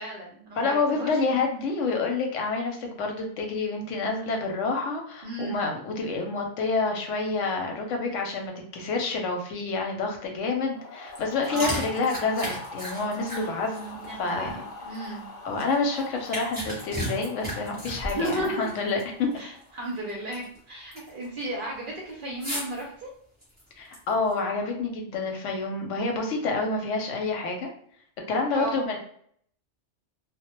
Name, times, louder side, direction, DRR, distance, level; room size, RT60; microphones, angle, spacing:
voice 1, 0.0-1.4 5.2-5.6 11.5-11.8 14.0-15.3 18.1-18.7 19.3-23.1 28.5-28.8, right 1 dB, 55° right, -3 dB, 0.6 m, -34 dB
voice 2, 0.6-14.6 15.4-19.3 23.8-27.7 28.3-29.0, left 3 dB, 85° left, 2 dB, 0.9 m, -28 dB
sound 1, 10.7-19.8, left 3 dB, 60° left, 0.5 m, -42 dB
sound 2, 11.1-15.1 15.6-19.1 19.3-19.4 20.0-20.6 20.9-21.3 22.4-22.8 23.4-24.3, equal, 10° right, 0.9 m, -35 dB
2.1 x 2.1 x 2.9 m, 0.63 s
omnidirectional pair, 1.3 m